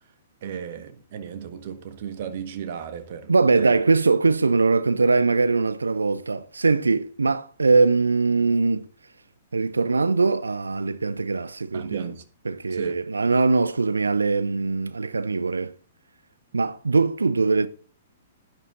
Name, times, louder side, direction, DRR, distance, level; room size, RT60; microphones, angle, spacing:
voice 1, 0.4-3.7 11.7-12.2 12.7-13.0 16.5-16.6, right 8 dB, 45° right, 1.6 m, -35 dB
voice 2, 3.3-8.9 9.5-12.1 12.5-15.7 16.5-17.7, right 3 dB, 75° right, 0.6 m, -21 dB
11.0 x 10.0 x 3.8 m
figure-of-eight pair, 110°, 0 cm